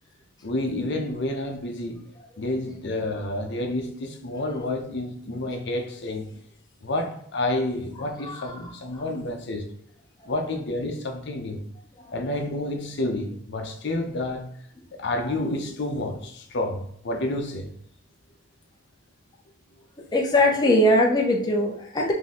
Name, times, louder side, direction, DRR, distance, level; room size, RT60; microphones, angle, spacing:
voice 1, 0.4-2.0 2.4-6.3 6.8-9.7 10.3-11.6 12.1-14.5 15.0-17.7, left 1 dB, 60° left, 0.7 m, -29 dB
voice 2, 8.2-9.0 12.0-12.1 20.1-22.1, left 1 dB, 20° left, 0.5 m, -22 dB
3.6 x 2.8 x 4.1 m
head